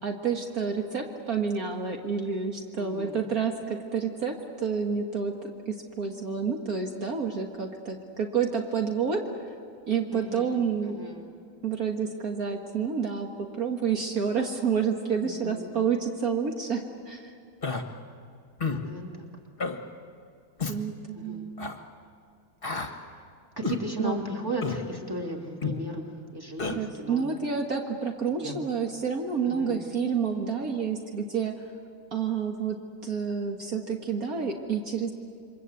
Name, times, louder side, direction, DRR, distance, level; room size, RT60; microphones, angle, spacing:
voice 1, 0.0-5.3 5.7-9.2 9.9-11.0 11.6-13.3 13.6-17.3 20.7-21.7 24.0-24.1 26.7-31.5 32.1-32.8 33.0-35.1, right 6 dB, 60° right, 2 dB, 1.9 m, -29 dB
voice 2, 2.7-3.2 10.1-11.3 15.2-15.7 18.6-19.3 21.1-21.5 22.7-23.3 23.6-27.3 28.4-28.6 29.4-29.8, right 1 dB, 15° right, 0 dB, 3.0 m, -36 dB
Human voice, 17.6-17.8 18.6-18.8 19.6-19.8 20.6-20.8 21.6-21.8 22.6-22.9 23.6-23.8 24.6-24.8 25.6-25.8 26.6-26.8, left 4 dB, 35° left, 1.6 m, -30 dB
28.0 x 24.5 x 8.2 m, 2.3 s
omnidirectional pair, 1.8 m